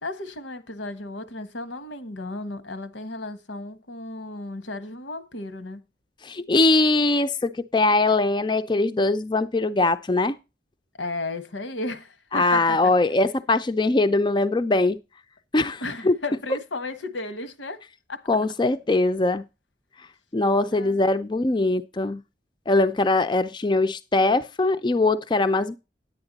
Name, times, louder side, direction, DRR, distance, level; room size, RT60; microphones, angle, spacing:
voice 1, 0.0-5.8 11.0-12.9 15.8-17.8 18.1-18.2 20.7-21.1, left 2 dB, 85° left, 1.3 m, -34 dB
voice 2, 6.2-10.4 12.3-15.0 15.5-16.1 18.3-19.4 20.3-22.2 22.7-25.8, left 2 dB, 25° left, 0.4 m, -21 dB
10.5 x 8.9 x 4.0 m
head